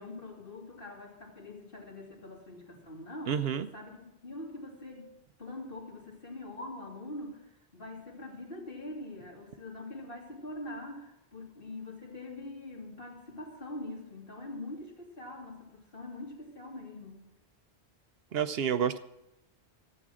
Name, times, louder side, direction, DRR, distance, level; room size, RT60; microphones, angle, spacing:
voice 1, 0.0-5.1 5.4-17.2, left 2 dB, 55° left, -2 dB, 2.9 m, -44 dB
voice 2, 3.3-3.7 18.3-19.0, right 8 dB, 70° right, 11 dB, 0.8 m, -29 dB
14.0 x 8.2 x 6.2 m, 0.87 s
omnidirectional pair, 1.1 m